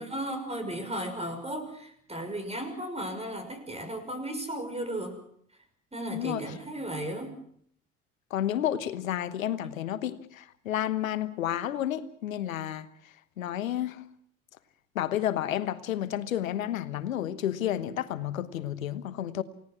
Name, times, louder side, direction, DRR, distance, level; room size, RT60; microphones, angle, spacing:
voice 1, 0.0-5.2 5.9-7.4, right 1 dB, 15° right, 6.1 m, -35 dB
voice 2, 6.1-6.4 8.3-12.9 13.4-14.0 14.9-19.4, left 11 dB, 80° left, 1.2 m, -31 dB
28.5 x 17.5 x 6.1 m
figure-of-eight pair, 55°, 40 cm